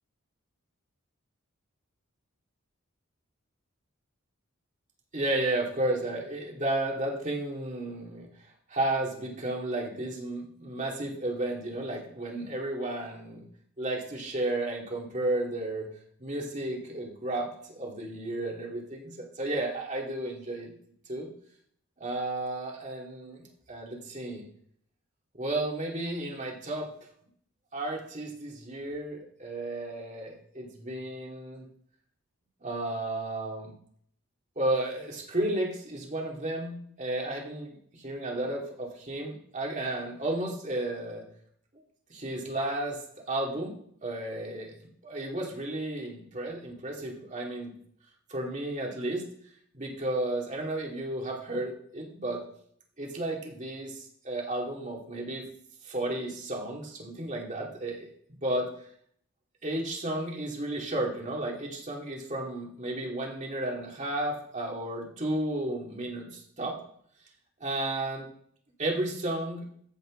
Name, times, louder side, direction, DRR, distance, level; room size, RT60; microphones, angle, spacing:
voice 1, 5.1-8.3 8.7-13.5 13.8-15.9 16.2-20.7 21.1-21.3 22.0-24.4 25.3-26.9 27.7-31.7 32.6-33.7 34.6-41.2 42.1-43.0 43.3-43.7 44.0-44.7 45.0-47.7 48.3-49.2 49.7-52.4 53.0-55.5 55.8-58.1 58.4-58.7 59.6-66.8 67.6-68.3 68.8-69.6, right 1 dB, 35° right, -1 dB, 2.6 m, -33 dB
15.0 x 7.7 x 3.9 m, 0.64 s
head